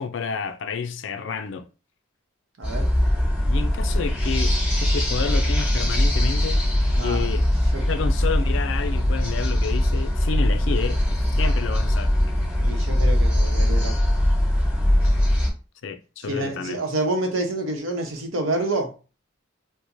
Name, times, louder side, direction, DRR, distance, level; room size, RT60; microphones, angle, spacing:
voice 1, 0.0-1.7 3.4-6.7 7.0-7.5 7.9-12.1 15.8-16.8, left 5 dB, 65° left, 0.4 m, -30 dB
sound 1, 2.6-15.5, left 1 dB, 5° right, 1.6 m, -21 dB
voice 2, 2.6-2.9 6.9-7.3 7.7-7.8 12.6-14.0 16.2-18.9, right 2 dB, 80° right, 0.9 m, -28 dB
4.6 x 2.1 x 2.6 m
head